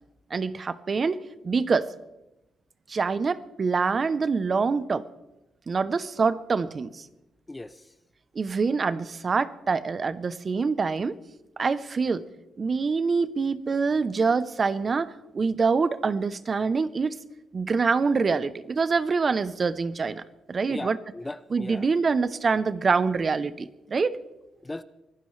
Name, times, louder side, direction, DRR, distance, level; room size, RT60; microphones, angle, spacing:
voice 1, 0.3-1.2 1.4-1.9 2.9-5.0 5.7-7.1 8.4-11.2 11.6-12.2 12.6-17.2 17.5-20.2 20.5-21.0 21.5-24.2, right 4 dB, 35° right, 0.7 m, -25 dB
voice 2, 7.5-7.9 20.7-21.9 24.6-24.8, left 2 dB, 15° left, 0.5 m, -37 dB
24.5 x 16.0 x 3.3 m
cardioid pair, 115°, 0 cm